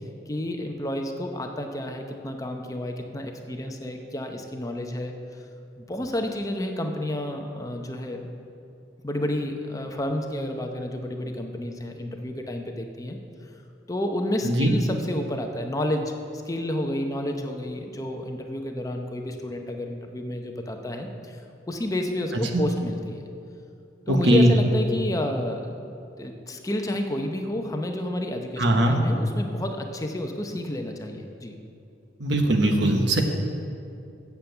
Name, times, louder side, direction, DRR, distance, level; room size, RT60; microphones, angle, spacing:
voice 1, 0.3-5.1 5.8-8.3 9.0-13.2 13.9-16.2 16.5-21.4 21.7-23.2 24.1-31.6, left 1 dB, 20° left, 4 dB, 0.7 m, -30 dB
voice 2, 14.4-14.7 22.5-22.6 24.1-24.5 28.6-29.0 32.2-33.2, right 1 dB, 75° right, 3 dB, 1.1 m, -20 dB
8.1 x 7.0 x 7.8 m, 2.6 s
head